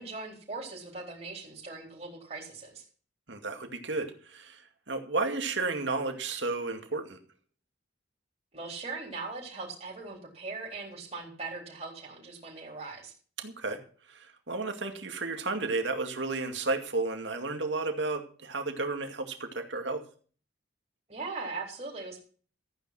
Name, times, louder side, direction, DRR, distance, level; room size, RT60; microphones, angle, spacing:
voice 1, 0.0-2.8 8.5-13.1 21.1-22.2, right 3 dB, 35° right, -1 dB, 3.9 m, -40 dB
voice 2, 3.3-4.6 4.9-7.2 13.4-13.8 14.1-20.0, right 3 dB, 70° right, 5 dB, 2.2 m, -32 dB
14.0 x 9.4 x 6.0 m, 0.42 s
head